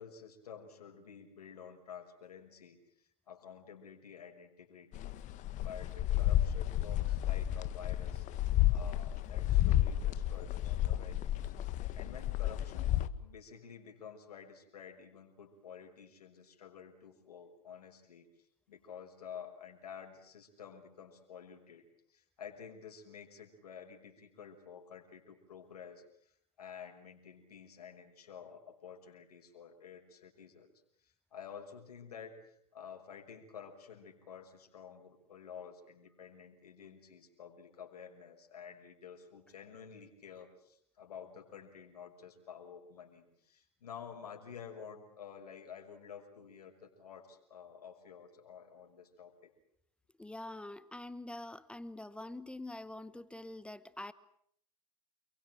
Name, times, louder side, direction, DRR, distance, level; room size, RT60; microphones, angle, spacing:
voice 1, 0.0-5.1 5.6-8.2 8.7-11.5 11.9-18.2 18.7-21.8 22.1-26.3 26.6-30.7 31.0-49.5, left 7 dB, 80° left, 2 dB, 6.2 m, -51 dB
sound 1, 4.9-13.1, left 13 dB, 40° left, 1.6 m, -31 dB
voice 2, 50.2-54.1, left 2 dB, 5° left, 15 dB, 1.1 m, -45 dB
28.5 x 23.0 x 7.8 m, 0.68 s
hypercardioid pair, 105°, 20 cm